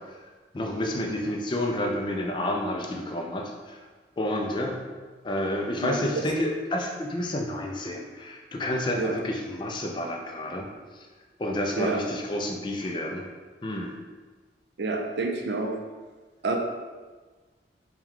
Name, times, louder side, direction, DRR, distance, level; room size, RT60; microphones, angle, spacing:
voice 1, 0.0-3.8 4.2-4.8 5.2-10.7 10.9-11.1 11.4-13.2 13.6-14.0, left 1 dB, 25° left, 1 dB, 0.4 m, -30 dB
voice 2, 14.8-15.7 16.4-16.6, right 3 dB, 75° right, 3 dB, 0.5 m, -28 dB
4.5 x 2.3 x 3.6 m, 1.4 s
head